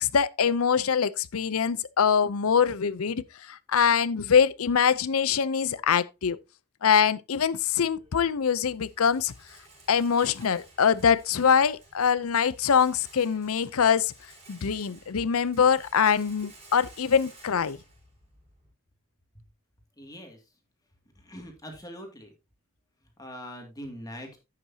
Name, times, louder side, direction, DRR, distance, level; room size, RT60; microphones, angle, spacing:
voice 1, 0.0-6.4 6.8-9.3 9.9-14.1 14.5-17.8, left 7 dB, 80° left, 0.6 m, -24 dB
Rattle, 7.7-18.7, right 2 dB, 30° right, 4.3 m, -54 dB
voice 2, 20.0-20.4 21.2-22.3 23.2-24.4, equal, 15° left, 2.3 m, -42 dB
11.0 x 8.5 x 2.8 m
head